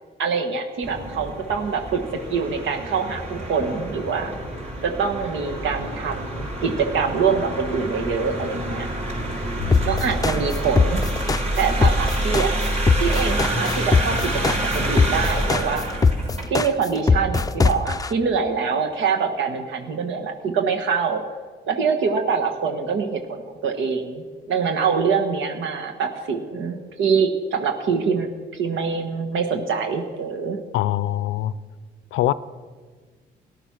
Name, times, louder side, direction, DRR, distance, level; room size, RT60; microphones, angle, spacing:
voice 1, 0.2-4.3 4.8-8.9 9.8-11.0 11.6-12.5 13.0-15.9 16.5-21.2 21.7-30.6, right 5 dB, 75° right, 4 dB, 1.3 m, -24 dB
sound 1, 0.8-16.4, right 1 dB, 35° right, 4.3 m, -28 dB
voice 2, 9.6-10.0 30.7-31.5 32.1-32.3, left 14 dB, 90° left, 17 dB, 0.5 m, -23 dB
sound 2, 9.7-18.1, left 4 dB, 20° left, 0.5 m, -20 dB
14.0 x 11.0 x 6.0 m, 1.5 s
cardioid pair, 90°, 20 cm